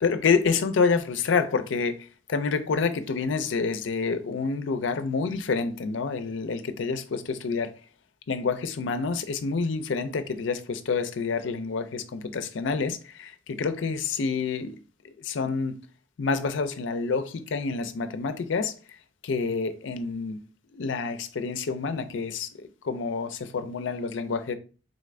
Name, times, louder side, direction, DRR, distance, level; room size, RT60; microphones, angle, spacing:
voice 1, 0.0-2.0 2.3-7.7 8.3-14.8 15.0-15.8 16.2-18.7 19.2-20.4 20.7-24.5, left 4 dB, 70° left, 0.4 m, -28 dB
3.9 x 2.5 x 3.2 m
head